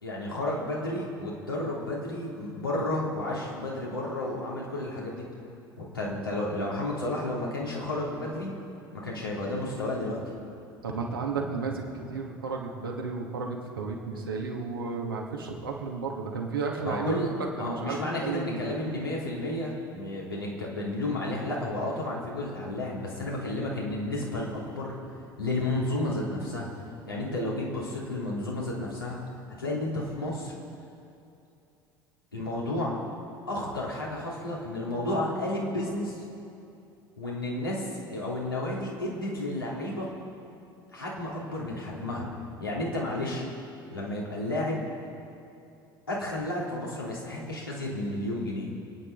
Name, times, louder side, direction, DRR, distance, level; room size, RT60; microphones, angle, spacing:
voice 1, 0.0-5.2 5.8-8.5 8.9-10.2 14.1-14.2 16.8-17.3 17.6-25.0 25.4-26.7 27.1-29.2 29.5-30.5 32.3-33.0 33.5-36.2 37.2-40.1 40.9-42.3 42.6-43.4 43.9-44.9 46.1-48.7, left 1 dB, 85° left, -5 dB, 3.2 m, -32 dB
voice 2, 10.8-17.2 17.6-18.8, right 4 dB, 80° right, -1 dB, 2.2 m, -33 dB
27.5 x 9.9 x 4.0 m, 2.7 s
figure-of-eight pair, 65°, 12 cm